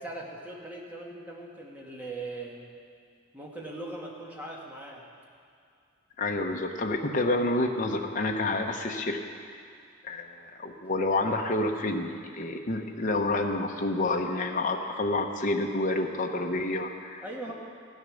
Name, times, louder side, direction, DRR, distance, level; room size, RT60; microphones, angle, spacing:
voice 1, 0.0-2.7 3.3-5.0 17.2-17.5, right 2 dB, 10° right, -3 dB, 1.9 m, -40 dB
voice 2, 6.2-9.2 9.5-9.6 10.0-17.2, left 2 dB, 40° left, 2 dB, 0.9 m, -29 dB
15.5 x 10.0 x 6.4 m, 2.3 s
head